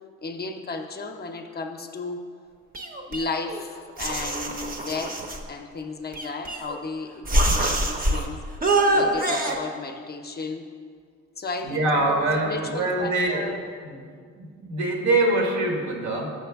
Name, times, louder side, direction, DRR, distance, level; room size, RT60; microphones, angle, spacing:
voice 1, 0.2-2.2 3.1-8.4 8.9-10.7 11.4-13.6, left 4 dB, 35° left, 5 dB, 0.5 m, -34 dB
sound 1, 2.7-3.6 4.0-5.4 6.1-6.9 7.3-8.2 8.6-9.6, right 1 dB, 30° right, 0.7 m, -24 dB
voice 2, 11.6-13.5 13.8-14.1 14.4-16.3, right 2 dB, 70° right, 1 dB, 1.3 m, -24 dB
6.9 x 6.3 x 3.4 m, 2.1 s
cardioid pair, 90°, 30 cm